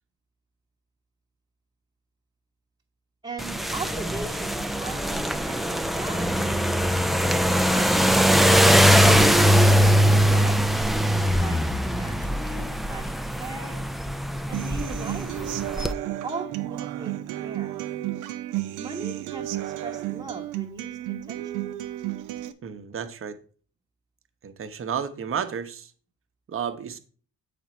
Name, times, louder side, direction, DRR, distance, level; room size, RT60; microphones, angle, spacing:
voice 1, 3.2-6.7 11.3-13.9 14.5-15.6 16.2-17.7 18.8-21.7, right 3 dB, 15° right, 1.0 m, -39 dB
sound 1, 3.4-15.9, equal, ahead, 0.4 m, -21 dB
Human voice / Acoustic guitar, 14.5-22.5, right 14 dB, 85° right, 0.6 m, -32 dB
voice 2, 22.6-23.4 24.4-25.9 26.5-27.0, right 7 dB, 45° right, 0.9 m, -32 dB
7.1 x 5.1 x 4.3 m
cardioid pair, 90°, 30 cm